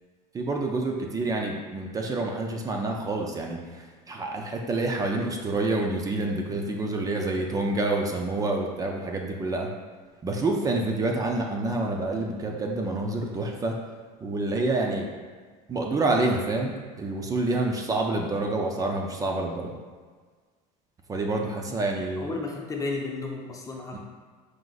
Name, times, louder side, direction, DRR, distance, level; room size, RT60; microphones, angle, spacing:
voice 1, 0.3-9.7 10.2-13.7 14.2-15.1 15.7-19.7 21.1-22.3 23.9-24.0, right 2 dB, 20° right, 1 dB, 0.5 m, -28 dB
voice 2, 22.2-24.0, left 3 dB, 20° left, 0 dB, 0.6 m, -33 dB
4.8 x 2.5 x 3.9 m, 1.5 s
supercardioid pair, 130°, 18 cm